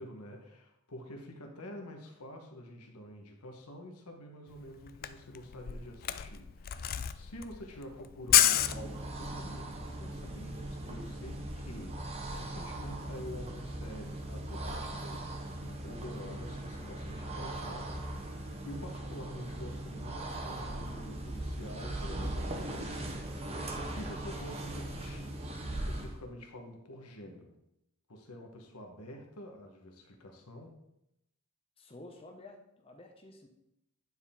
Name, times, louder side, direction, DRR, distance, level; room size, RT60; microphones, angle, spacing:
voice 1, 0.0-27.6 28.1-30.8, left 1 dB, 85° left, 2 dB, 1.2 m, -48 dB
Camera, 4.6-4.7 4.9-9.4, left 12 dB, 40° left, 0.3 m, -29 dB
sound 1, 8.4-26.2, right 1 dB, 25° right, 0.8 m, -39 dB
voice 2, 31.8-33.5, left 2 dB, 25° left, 2 dB, 1.0 m, -51 dB
9.5 x 4.6 x 3.6 m, 0.83 s
head